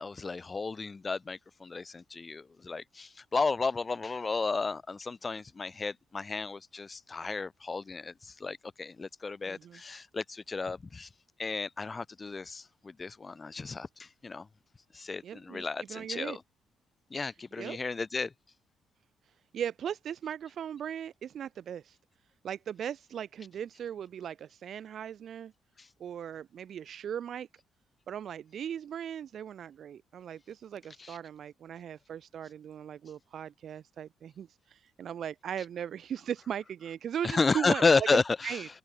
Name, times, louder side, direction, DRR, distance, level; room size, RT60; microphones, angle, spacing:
voice 1, 0.0-11.1 11.4-14.5 14.9-16.4 17.1-18.3 25.8-25.9 31.0-31.2 37.2-38.6, left 4 dB, 30° left, 1.2 m, -32 dB
voice 2, 9.5-9.8 15.2-16.4 17.6-17.8 19.5-22.0 22.4-25.5 26.0-27.5 28.1-38.7, right 9 dB, 60° right, 3.6 m, -38 dB
cardioid pair, 90°, 0 cm